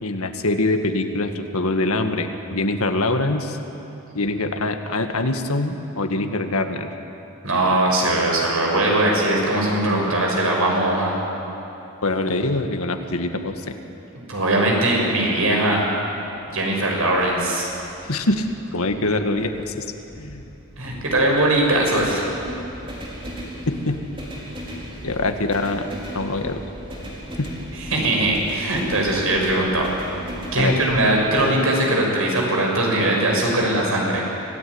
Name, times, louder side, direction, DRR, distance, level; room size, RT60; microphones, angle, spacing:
voice 1, 0.0-3.6 4.1-6.9 12.0-13.8 18.1-19.9 20.2-20.4 23.7-24.0 25.0-25.9 26.1-26.6 27.4-27.5 30.6-30.8, left 2 dB, 85° left, 6 dB, 1.8 m, -24 dB
voice 2, 7.4-11.2 14.3-15.8 16.5-17.7 20.8-22.2 27.8-29.9 30.5-34.2, right 1 dB, 80° right, -1 dB, 6.3 m, -20 dB
sound 1, 16.7-31.4, equal, 25° right, 4.0 m, -37 dB
26.0 x 16.5 x 9.7 m, 2.9 s
head